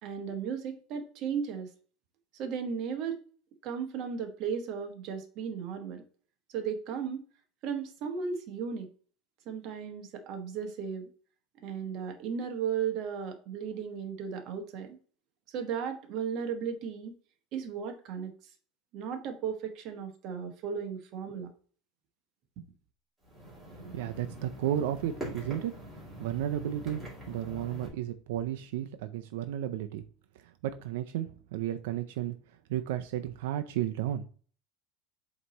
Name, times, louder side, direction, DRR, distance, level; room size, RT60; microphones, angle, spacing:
voice 1, 0.0-1.7 2.3-3.2 3.6-6.0 6.5-7.2 7.6-8.9 9.5-11.1 11.6-15.0 15.5-17.2 17.5-18.3 18.9-21.5, right 7 dB, 40° right, 5 dB, 1.1 m, -35 dB
sound 1, 23.2-27.9, equal, 5° right, 2.4 m, -43 dB
voice 2, 23.8-25.7 26.2-30.0 30.6-32.4 32.7-34.3, right 11 dB, 80° right, 8 dB, 0.5 m, -33 dB
7.8 x 3.0 x 4.1 m, 0.42 s
cardioid pair, 170°, 0 cm